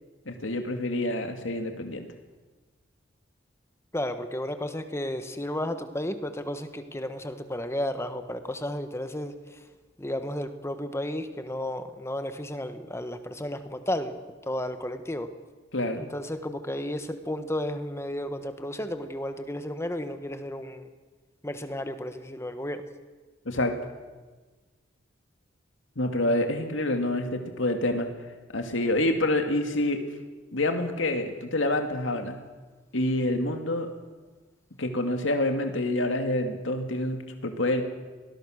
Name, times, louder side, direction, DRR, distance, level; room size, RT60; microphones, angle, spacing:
voice 1, 0.3-2.0 15.7-16.0 23.5-23.7 26.0-28.1 28.5-30.0 30.5-32.4 32.9-33.9 34.8-37.8, left 1 dB, 90° left, 5 dB, 2.3 m, -27 dB
voice 2, 3.9-9.3 10.0-14.2 14.5-15.3 16.0-20.9 21.4-22.8, left 1 dB, 15° left, 9 dB, 1.3 m, -33 dB
24.5 x 19.5 x 6.5 m, 1.3 s
head